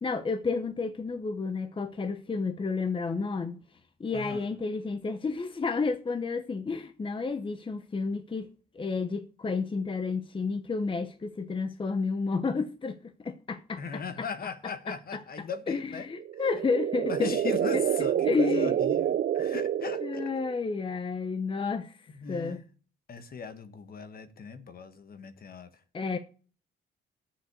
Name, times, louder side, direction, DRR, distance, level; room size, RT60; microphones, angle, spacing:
voice 1, 0.0-3.6 4.0-8.5 8.7-14.0 14.9-15.2 15.7-17.8 18.2-18.8 20.0-22.0 22.3-22.6 25.9-26.2, left 4 dB, 25° left, 0.8 m, -31 dB
voice 2, 4.1-4.4 13.8-16.1 17.1-20.3 22.1-22.6 23.1-25.8, left 5 dB, 50° left, 1.4 m, -39 dB
sound 1, 16.2-20.6, right 10 dB, 55° right, 0.6 m, -28 dB
7.4 x 7.1 x 8.2 m
cardioid pair, 90°, 20 cm